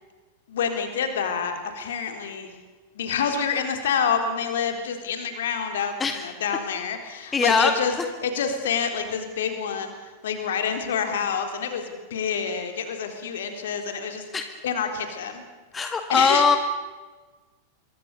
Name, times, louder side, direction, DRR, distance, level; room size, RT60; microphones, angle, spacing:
voice 1, 0.5-2.5 2.9-7.9 8.2-14.2 14.6-15.4 15.8-16.4, left 6 dB, 60° left, 6 dB, 3.9 m, -28 dB
voice 2, 7.3-7.7 14.3-14.4 15.7-16.6, left 5 dB, 15° left, 6 dB, 2.0 m, -20 dB
26.0 x 23.5 x 6.9 m, 1.3 s
figure-of-eight pair, 90°, 0 cm